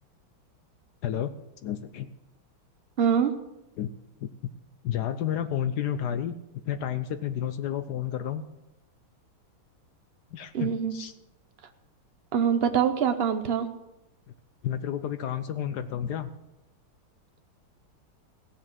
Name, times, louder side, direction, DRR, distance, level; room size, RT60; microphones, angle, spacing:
voice 1, 1.6-2.1 3.8-4.3 4.8-6.3 6.7-8.4 10.3-11.1 14.6-16.3, left 10 dB, 70° left, 11 dB, 1.0 m, -31 dB
voice 2, 3.0-3.3 10.5-11.0 12.3-13.7, right 7 dB, 60° right, 8 dB, 0.6 m, -24 dB
16.0 x 7.3 x 7.5 m, 0.94 s
omnidirectional pair, 2.3 m